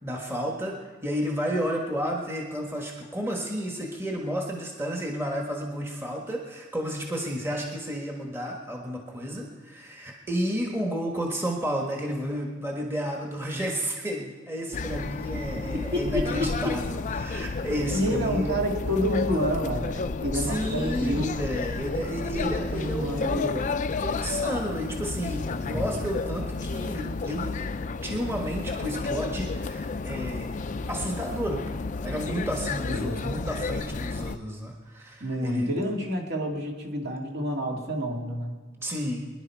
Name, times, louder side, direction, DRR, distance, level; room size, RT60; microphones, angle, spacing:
voice 1, 0.0-18.6 20.3-23.7 24.0-27.6 28.0-30.5 30.9-35.7 38.8-39.3, equal, 15° right, 0 dB, 1.4 m, -32 dB
sound 1, 14.7-34.4, left 3 dB, 40° left, 0.5 m, -31 dB
voice 2, 15.7-16.8 17.9-21.3 22.3-23.7 25.7-26.0 32.9-33.3 35.2-38.5, equal, 55° right, 0 dB, 2.4 m, -29 dB
23.5 x 10.5 x 4.6 m, 1.4 s
head